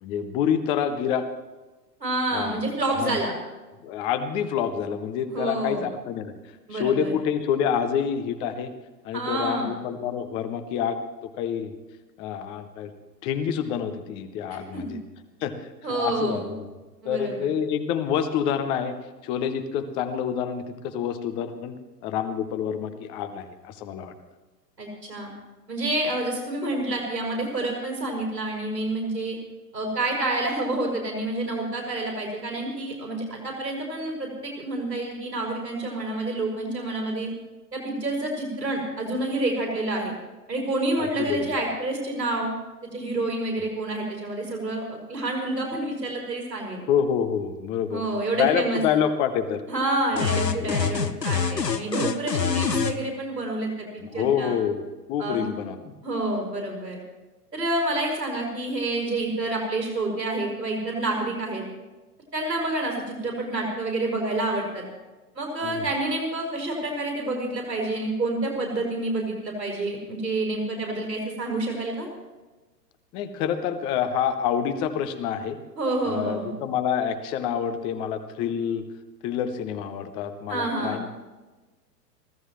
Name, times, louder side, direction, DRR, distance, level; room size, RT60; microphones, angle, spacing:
voice 1, 0.0-1.3 2.3-2.6 3.0-3.2 3.8-6.3 6.7-8.7 9.0-11.7 12.2-12.9 13.2-15.0 15.4-15.5 15.9-16.7 17.0-19.0 19.2-21.8 22.0-24.1 41.2-41.5 46.9-48.1 48.4-49.6 50.3-51.0 54.0-56.0 65.6-65.9 73.1-75.6 76.0-78.9 79.2-81.1, left 8 dB, 10° left, 11 dB, 0.5 m, -27 dB
voice 2, 2.0-3.4 5.3-5.9 6.7-7.1 9.1-9.7 14.7-14.9 15.8-16.5 17.0-17.5 24.8-25.3 25.7-29.4 29.7-37.3 37.7-40.1 40.5-42.5 42.9-46.8 47.9-48.8 49.7-54.6 55.2-55.5 56.0-57.0 57.5-61.6 62.3-64.8 65.3-72.1 75.8-76.5 80.5-81.0, right 2 dB, 80° right, -1 dB, 5.0 m, -28 dB
sound 1, 50.2-53.0, left 6 dB, 80° left, 1.1 m, -25 dB
24.0 x 16.0 x 3.1 m, 1.2 s
figure-of-eight pair, 105°, 49 cm